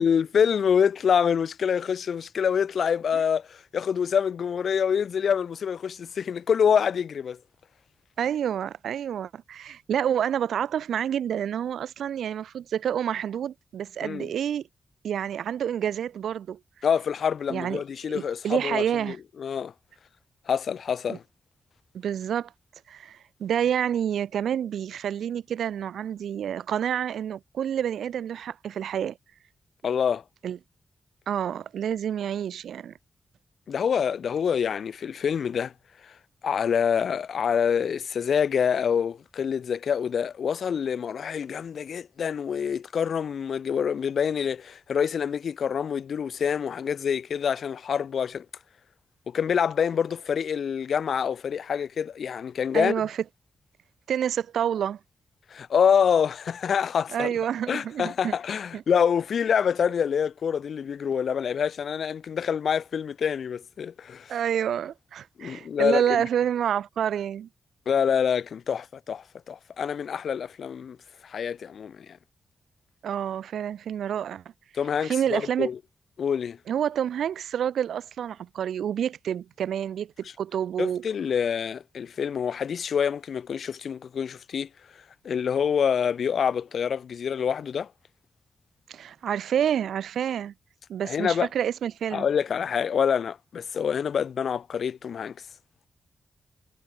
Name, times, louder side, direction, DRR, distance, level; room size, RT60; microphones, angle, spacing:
voice 1, 0.0-7.4 14.0-14.3 16.8-19.7 20.5-21.2 29.8-30.2 33.7-35.7 36.0-36.1 36.4-48.4 49.3-52.9 55.5-57.3 57.7-64.3 65.4-66.2 67.9-71.0 71.2-72.2 74.7-75.8 76.2-76.6 80.8-84.7 85.2-87.9 91.0-91.5 92.1-95.3, left 7 dB, 75° left, 0.9 m, -26 dB
voice 2, 8.2-14.7 15.0-16.6 17.5-17.8 18.1-19.2 21.1-21.2 21.9-22.5 22.9-29.2 30.4-30.6 31.3-32.9 52.7-53.2 54.1-55.0 57.1-58.3 58.7-58.8 64.3-67.5 73.0-74.4 75.0-75.7 76.7-81.1 88.9-90.5 90.9-92.2, right 9 dB, 85° right, 2.8 m, -28 dB
cardioid pair, 50°, 0 cm